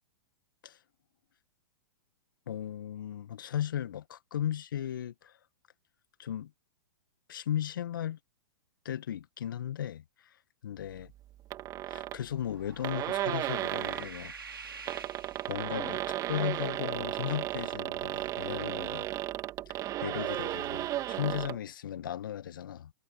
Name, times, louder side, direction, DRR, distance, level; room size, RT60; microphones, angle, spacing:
voice 1, 2.5-5.4 6.2-6.5 7.3-8.2 8.8-10.4 10.6-11.1 11.9-14.3 15.5-16.0 16.3-19.1 19.7-22.9, left 10 dB, 65° left, 2.0 m, -36 dB
sound 1, 11.5-12.2 12.6-12.7 12.8-14.1 14.7-21.6, right 14 dB, 30° right, 2.9 m, -34 dB
sound 2, 12.4-16.1, right 5 dB, 80° right, 5.3 m, -47 dB
figure-of-eight pair, 110°, 12 cm